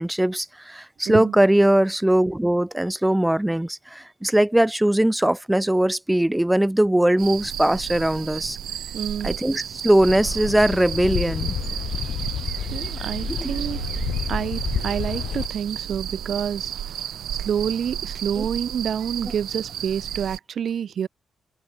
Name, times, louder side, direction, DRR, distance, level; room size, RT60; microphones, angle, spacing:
voice 1, 0.0-8.6 9.2-11.5 13.4-13.5 18.4-18.5, right 1 dB, 5° right, 1.7 m, -20 dB
sound 1, 7.2-20.4, right 10 dB, 80° right, 1.4 m, -32 dB
voice 2, 8.9-9.3 12.7-13.8 14.3-16.7 17.3-21.1, right 8 dB, 60° right, 1.9 m, -28 dB
sound 2, 10.0-15.5, left 10 dB, 90° left, 2.3 m, -30 dB
wide cardioid pair, 135°, 0 cm